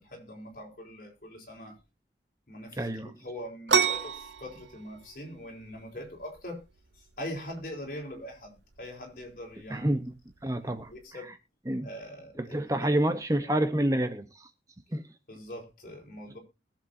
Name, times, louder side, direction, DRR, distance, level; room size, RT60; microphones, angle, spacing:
voice 1, 0.0-1.8 2.5-6.6 7.2-10.0 10.4-10.5 10.9-11.3 11.8-12.9 13.4-13.5 15.3-16.4, equal, 50° left, 4.4 m, -42 dB
voice 2, 2.8-3.1 9.7-10.1 10.4-10.9 11.7-11.9 12.4-14.5 14.9-15.1, right 1 dB, 20° right, 0.8 m, -28 dB
sound 1, 3.7-11.1, right 6 dB, 90° right, 0.9 m, -33 dB
21.5 x 7.4 x 2.7 m
head